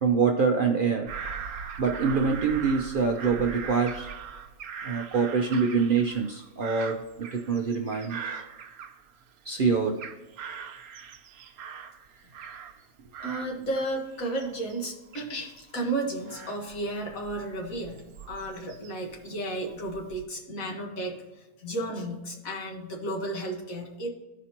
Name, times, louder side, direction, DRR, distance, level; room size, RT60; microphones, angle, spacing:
voice 1, 0.0-1.1 1.8-4.1 4.8-8.2 9.4-10.0, right 5 dB, 55° right, 3 dB, 0.6 m, -25 dB
Bird vocalization bird call bird song / Crow, 1.1-9.4 9.7-12.9 13.1-19.1 19.7-20.2, right 6 dB, 85° right, 1.1 m, -41 dB
voice 2, 13.2-21.3 21.6-24.1, right 1 dB, 70° left, 1 dB, 1.8 m, -33 dB
14.0 x 5.1 x 2.9 m, 1.1 s
omnidirectional pair, 1.5 m